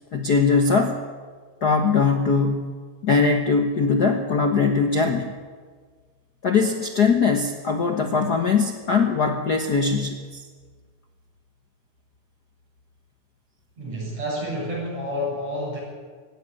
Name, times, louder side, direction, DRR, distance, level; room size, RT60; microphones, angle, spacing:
voice 1, 0.1-1.0 1.6-2.8 3.0-5.3 6.4-10.4, left 4 dB, 90° left, 5 dB, 0.8 m, -21 dB
voice 2, 13.8-15.8, equal, 55° right, -2 dB, 8.3 m, -29 dB
17.5 x 15.5 x 10.0 m, 1.5 s
omnidirectional pair, 3.7 m